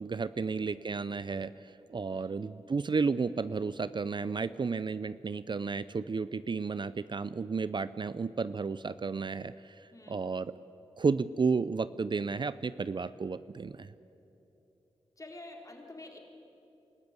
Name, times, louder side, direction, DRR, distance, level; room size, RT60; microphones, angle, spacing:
voice 1, 0.0-10.5 11.0-13.9, right 4 dB, 45° right, 15 dB, 0.5 m, -32 dB
voice 2, 2.1-2.4 9.9-10.2 15.2-16.2, left 2 dB, 30° left, 1 dB, 4.1 m, -48 dB
27.0 x 14.0 x 9.1 m, 2.9 s
cardioid pair, 45°, 11 cm